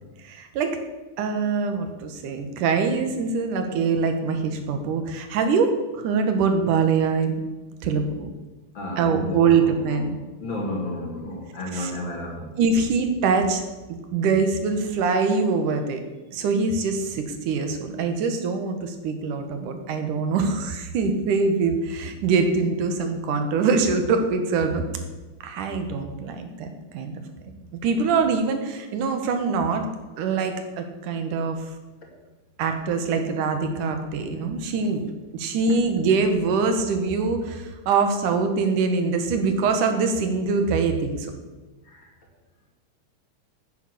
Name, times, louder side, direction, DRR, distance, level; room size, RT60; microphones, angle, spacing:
voice 1, 0.2-0.8 1.2-7.4 7.8-8.3 9.0-10.2 11.7-11.9 12.6-13.6 13.9-16.0 16.3-24.8 25.4-26.7 26.9-27.2 27.8-29.9 30.2-31.6 32.6-35.0 35.3-41.3, right 4 dB, 80° right, 6 dB, 2.9 m, -23 dB
voice 2, 8.7-10.1 10.4-12.5 41.8-42.1, left 1 dB, 40° left, 0 dB, 2.6 m, -32 dB
9.7 x 9.4 x 7.2 m, 1.2 s
omnidirectional pair, 3.6 m